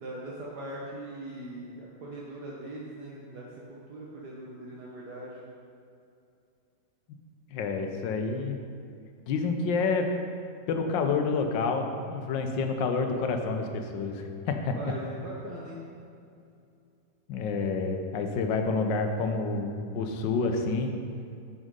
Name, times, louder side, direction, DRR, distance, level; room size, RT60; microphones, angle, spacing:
voice 1, 0.0-5.4 14.7-15.8, right 1 dB, 65° right, -5 dB, 1.5 m, -40 dB
voice 2, 7.5-8.6 9.3-10.1 10.7-14.7 17.3-20.9, left 4 dB, 80° left, 5 dB, 1.4 m, -28 dB
6.3 x 6.2 x 5.3 m, 2.5 s
omnidirectional pair, 2.0 m